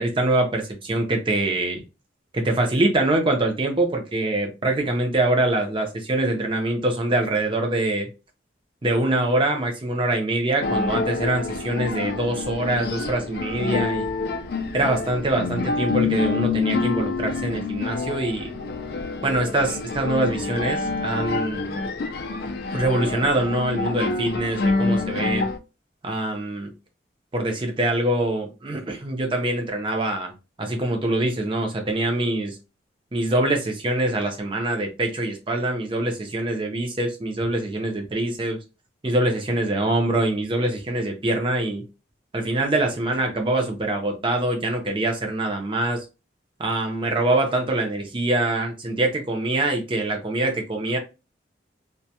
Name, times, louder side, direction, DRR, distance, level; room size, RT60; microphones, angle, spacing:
voice 1, 0.0-1.8 2.3-8.1 8.8-14.1 14.7-18.5 19.2-21.8 22.7-25.5 26.0-26.7 27.3-30.3 30.6-32.6 33.1-38.6 39.0-41.9 42.3-46.0 46.6-51.0, right 2 dB, 25° right, 0.5 m, -24 dB
sound 1, 10.6-25.6, left 4 dB, 55° left, 0.3 m, -27 dB
2.2 x 2.1 x 2.7 m
head